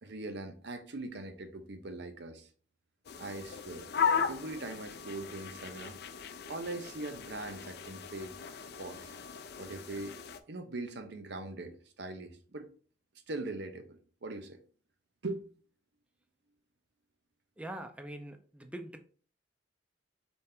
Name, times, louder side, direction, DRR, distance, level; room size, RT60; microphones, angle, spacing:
voice 1, 0.0-2.5 3.2-3.9 4.3-6.0 6.5-9.1 9.6-10.2 10.5-12.7 13.3-14.6 15.2-15.5, right 2 dB, 65° right, 0.7 m, -41 dB
sound 1, 3.0-10.4, left 6 dB, 60° left, 0.5 m, -37 dB
voice 2, 17.6-19.0, right 1 dB, 5° right, 0.5 m, -43 dB
4.2 x 3.3 x 3.7 m
head